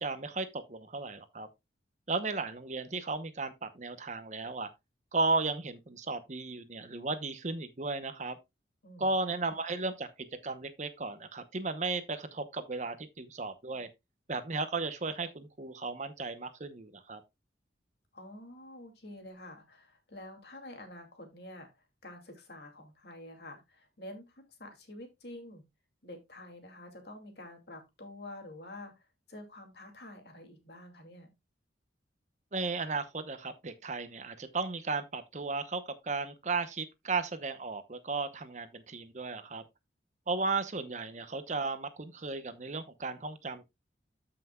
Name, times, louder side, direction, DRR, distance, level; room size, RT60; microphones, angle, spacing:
voice 1, 0.0-1.5 2.1-4.7 5.1-8.4 9.0-13.9 14.3-17.2 32.5-39.6 40.3-43.6, right 3 dB, 40° right, 0.8 m, -35 dB
voice 2, 8.8-9.4 18.1-25.6 26.0-31.3, left 1 dB, 60° left, 2.5 m, -48 dB
13.5 x 5.8 x 2.3 m
head